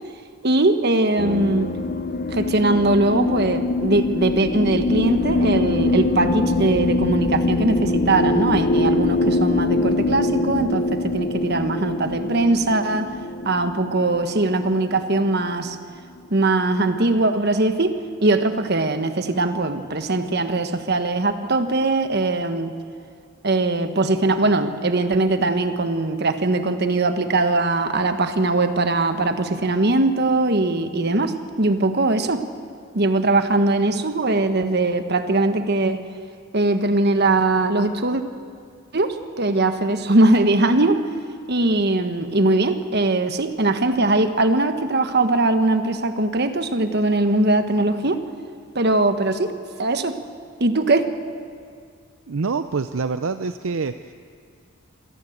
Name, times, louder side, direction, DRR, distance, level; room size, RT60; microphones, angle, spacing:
voice 1, 0.4-1.7 2.3-13.1 13.4-15.8 16.3-22.7 23.4-32.5 32.9-36.0 36.5-38.2 38.9-41.0 41.5-48.2 48.7-49.5 49.8-50.2 50.6-51.1, right 2 dB, 50° right, 9 dB, 1.4 m, -21 dB
sound 1, 1.2-15.7, left 2 dB, 40° left, 0.7 m, -23 dB
voice 2, 52.3-54.1, right 4 dB, 70° right, 10 dB, 0.6 m, -26 dB
26.5 x 17.0 x 8.0 m, 2.2 s
head